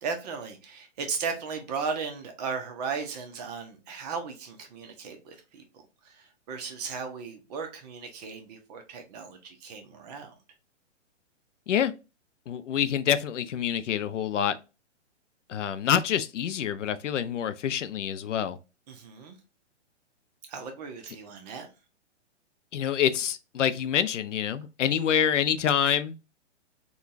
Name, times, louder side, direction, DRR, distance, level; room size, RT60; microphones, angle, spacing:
voice 1, 0.0-5.6 6.0-10.3 18.9-19.4 20.5-21.7, right 5 dB, 35° right, 0.7 m, -36 dB
voice 2, 12.5-14.5 15.5-18.6 22.7-26.2, left 9 dB, 75° left, 0.5 m, -26 dB
3.8 x 2.3 x 2.4 m
hypercardioid pair, 130°, 37 cm